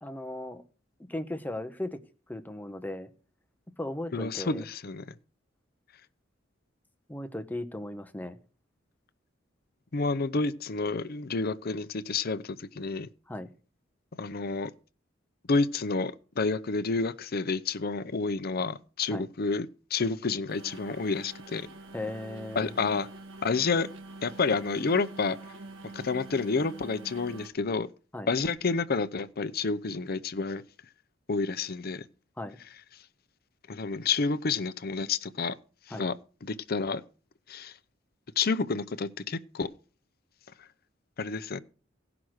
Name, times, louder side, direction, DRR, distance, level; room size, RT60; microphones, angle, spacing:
voice 1, 0.0-0.6 1.1-2.0 2.3-3.1 3.8-4.6 7.1-8.4 13.3-13.5 19.1-19.3 21.9-22.7 28.1-28.3 32.4-32.6 35.9-36.0, left 1 dB, 10° left, 0.9 m, -36 dB
voice 2, 4.1-5.0 9.9-13.1 14.2-14.7 15.5-19.7 19.9-21.7 22.6-23.1 23.4-23.9 24.2-25.4 25.9-27.9 28.3-30.6 31.3-32.0 33.7-35.6 35.9-36.1 36.4-37.0 37.5-37.7 38.4-39.7 41.2-41.6, left 4 dB, 50° left, 0.7 m, -29 dB
sound 1, 20.5-27.5, right 2 dB, 75° right, 1.9 m, -46 dB
16.0 x 6.0 x 6.4 m
head